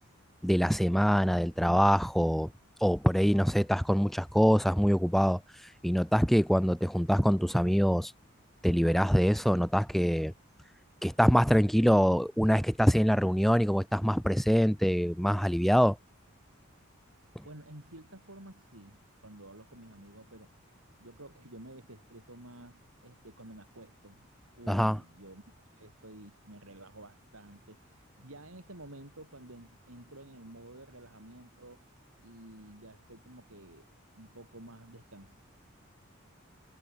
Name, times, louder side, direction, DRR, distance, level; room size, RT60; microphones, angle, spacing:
voice 1, 0.4-2.5 2.8-5.4 5.8-8.1 8.6-10.3 11.0-16.0 24.7-25.0, equal, ahead, 1.1 m, -24 dB
voice 2, 17.4-20.5 21.0-24.3 24.6-25.4 25.7-31.8 32.2-35.3, right 1 dB, 85° right, 5.7 m, -51 dB
head